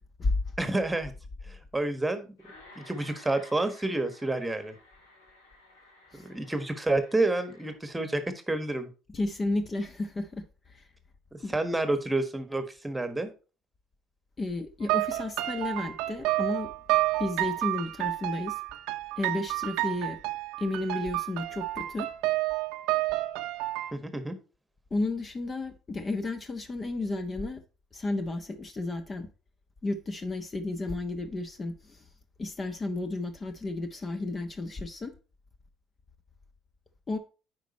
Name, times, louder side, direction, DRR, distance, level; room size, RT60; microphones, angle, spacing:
voice 1, 0.6-1.1 1.5-2.3 2.8-4.7 6.1-8.9 11.3-13.3 23.9-24.3, right 2 dB, 10° right, 1.4 m, -29 dB
sound 1, 2.4-7.8, left 2 dB, 90° left, 2.2 m, -54 dB
voice 2, 9.1-10.4 10.7-10.8 11.4-11.5 14.4-16.7 17.2-18.5 19.2-20.2 20.6-22.1 24.9-27.6 27.9-29.3 29.8-32.0 32.4-35.1 37.1-37.2, left 2 dB, 35° left, 1.1 m, -32 dB
sound 2, 14.8-23.9, right 18 dB, 75° right, 0.6 m, -30 dB
9.1 x 4.8 x 4.2 m
hypercardioid pair, 65°, 0 cm